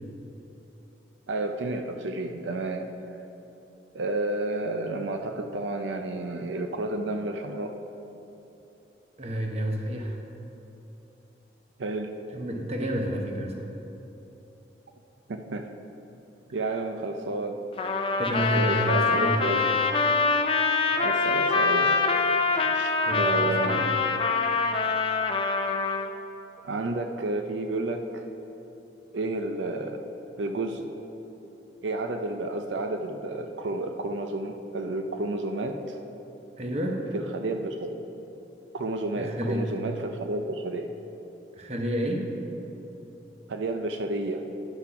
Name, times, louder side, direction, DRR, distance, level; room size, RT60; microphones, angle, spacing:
voice 1, 1.3-2.8 3.9-7.7 11.8-12.1 15.3-15.6 16.5-17.6 18.5-19.9 20.9-21.9 22.7-24.0 26.6-28.2 29.1-30.0 30.4-30.8 31.8-36.0 37.1-38.0 38.7-40.9 43.5-44.4, right 2 dB, 85° right, 5 dB, 0.6 m, -31 dB
voice 2, 9.2-10.2 12.3-13.7 18.2-19.4 23.0-23.9 36.6-37.1 39.2-39.7 41.6-42.3, equal, 35° right, 2 dB, 1.0 m, -29 dB
Trumpet, 17.8-26.1, left 4 dB, 30° left, 0.5 m, -24 dB
9.9 x 6.0 x 5.8 m, 3.0 s
head